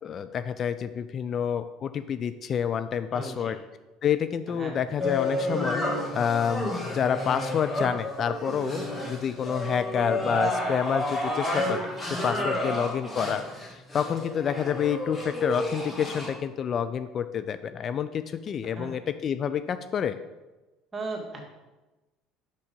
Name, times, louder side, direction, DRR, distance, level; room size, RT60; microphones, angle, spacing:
voice 1, 0.0-3.6 4.0-20.2, left 8 dB, 45° left, 11 dB, 0.3 m, -28 dB
voice 2, 3.1-3.6 4.5-4.8 12.3-12.7 18.6-19.0 20.9-21.4, right 2 dB, 25° right, -1 dB, 2.0 m, -37 dB
sound 1, 5.0-16.3, left 1 dB, 15° left, 2.1 m, -30 dB
5.9 x 5.7 x 5.2 m, 1.1 s
hypercardioid pair, 60°, 0 cm